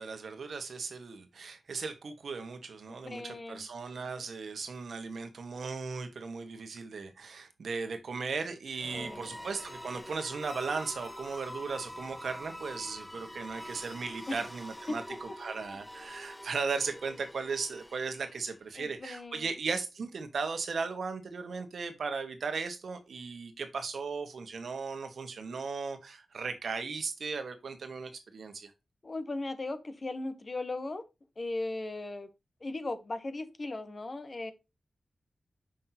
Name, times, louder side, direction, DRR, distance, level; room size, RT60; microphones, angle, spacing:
voice 1, 0.0-28.7, right 4 dB, 75° right, 1.4 m, -37 dB
voice 2, 2.9-3.7 8.9-9.3 14.3-14.4 14.9-15.0 15.5-15.8 18.7-19.5 29.0-31.0 31.4-32.3 32.6-34.5, left 2 dB, 35° left, 1.0 m, -37 dB
sound 1, 8.7-18.6, equal, 5° left, 0.8 m, -46 dB
6.3 x 5.9 x 2.8 m
wide cardioid pair, 145°, 0 cm